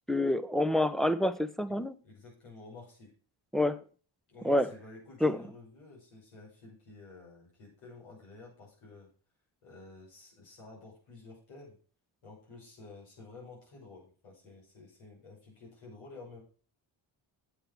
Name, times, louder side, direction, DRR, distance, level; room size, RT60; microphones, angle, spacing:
voice 1, 0.1-1.9 3.5-3.8 4.4-4.7 5.2-5.4, left 1 dB, ahead, 0.9 m, -27 dB
voice 2, 2.0-3.1 4.3-9.1 9.6-11.8 12.2-16.4, left 3 dB, 90° left, 6.4 m, -51 dB
8.8 x 7.8 x 6.1 m
supercardioid pair, 50°, 50 cm